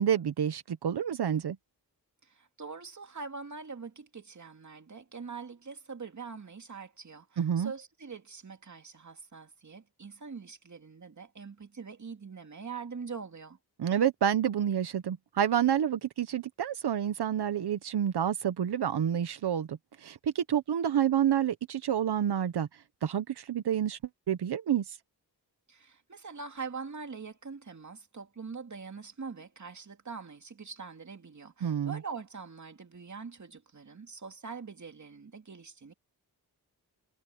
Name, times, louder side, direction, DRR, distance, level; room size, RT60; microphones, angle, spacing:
voice 1, 0.0-1.6 7.4-7.7 13.8-22.7 23.0-24.0 24.3-25.0 31.6-32.0, right 9 dB, 90° right, 0.9 m, -28 dB
voice 2, 2.2-13.6 25.7-35.9, right 5 dB, 45° right, 2.7 m, -43 dB
wide cardioid pair, 105°, 38 cm